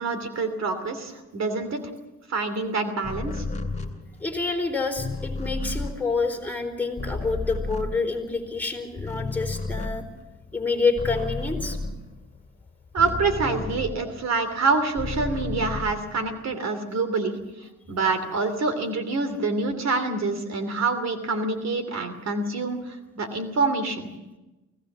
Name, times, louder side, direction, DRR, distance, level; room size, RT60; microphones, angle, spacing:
voice 1, 0.0-1.8 2.3-3.4 12.9-17.4 17.9-24.1, right 3 dB, 60° right, 9 dB, 2.9 m, -26 dB
sound 1, 3.0-8.6 8.9-14.4 14.7-16.5, left 3 dB, 25° left, 2.6 m, -33 dB
voice 2, 4.2-10.0 10.5-11.8, left 4 dB, 5° left, 2 dB, 4.2 m, -27 dB
24.5 x 17.0 x 7.4 m, 1.0 s
cardioid pair, 90°, 30 cm